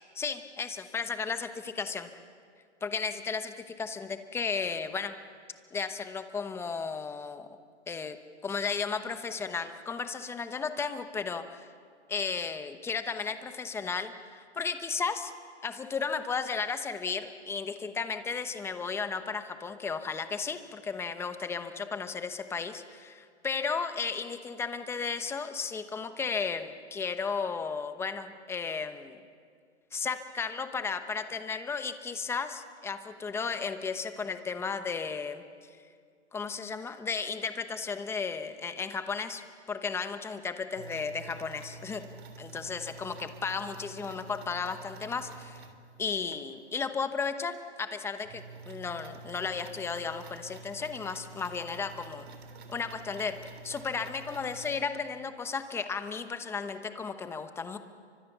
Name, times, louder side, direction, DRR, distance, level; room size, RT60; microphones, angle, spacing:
voice 1, 0.2-2.1 2.8-5.1 5.7-7.5 7.9-8.2 8.4-11.7 12.1-15.3 15.6-29.2 29.9-35.4 36.3-39.4 39.7-42.0 42.4-45.6 46.0-52.3 52.7-53.4 53.6-57.8, left 5 dB, 5° left, 9 dB, 1.0 m, -34 dB
sound 1, 40.8-46.4 47.0-47.1 47.5-47.6 47.9-54.8, right 4 dB, 60° right, 3.5 m, -48 dB
29.5 x 25.0 x 6.8 m, 2.2 s
hypercardioid pair, 150°, 35 cm